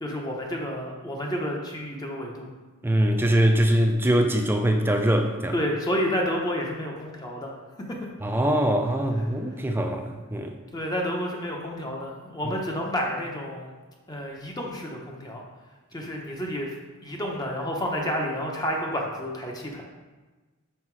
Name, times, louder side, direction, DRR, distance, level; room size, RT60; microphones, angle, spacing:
voice 1, 0.0-2.5 5.5-8.1 10.7-13.7 14.1-15.4 15.9-16.7 17.0-19.8, equal, 20° left, -1 dB, 0.9 m, -30 dB
voice 2, 2.8-5.5 8.2-10.5, right 1 dB, 10° right, 4 dB, 0.5 m, -22 dB
5.7 x 5.2 x 4.7 m, 1.3 s
head